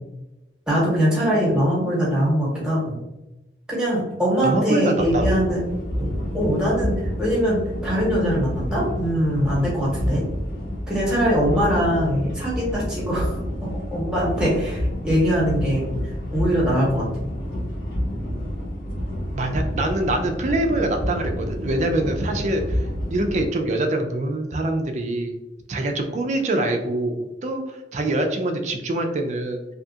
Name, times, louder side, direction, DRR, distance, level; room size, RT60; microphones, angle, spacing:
voice 1, 0.7-3.0 3.7-5.6 6.0-6.1 6.3-6.9 7.2-7.6 7.8-10.2 10.9-13.3 13.9-15.9 16.3-17.1, equal, 5° right, -6 dB, 1.0 m, -22 dB
voice 2, 4.4-5.4 19.3-22.9 23.1-25.4 25.7-29.6, right 2 dB, 40° right, 4 dB, 0.4 m, -24 dB
sound 1, 4.9-23.5, equal, 60° left, 1.2 m, -29 dB
2.7 x 2.3 x 2.7 m, 0.98 s
head